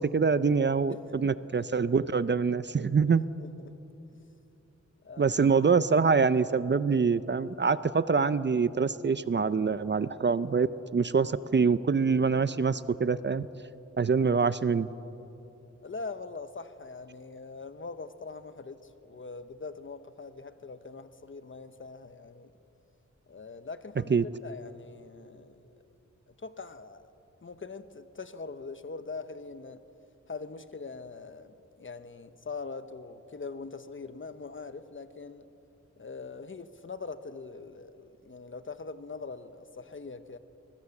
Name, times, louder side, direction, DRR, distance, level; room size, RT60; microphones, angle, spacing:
voice 1, 0.0-3.3 5.2-10.7 10.9-13.5 14.0-14.9 24.1-24.2, right 5 dB, 40° right, 15 dB, 0.5 m, -25 dB
voice 2, 0.9-1.3 1.6-1.7 3.4-3.7 5.0-5.4 15.8-22.5 23.3-25.8 26.4-27.1 27.4-29.8 30.3-35.4 36.0-40.4, left 4 dB, 45° left, 11 dB, 1.1 m, -42 dB
24.5 x 20.5 x 7.2 m, 2.9 s
wide cardioid pair, 100°, 29 cm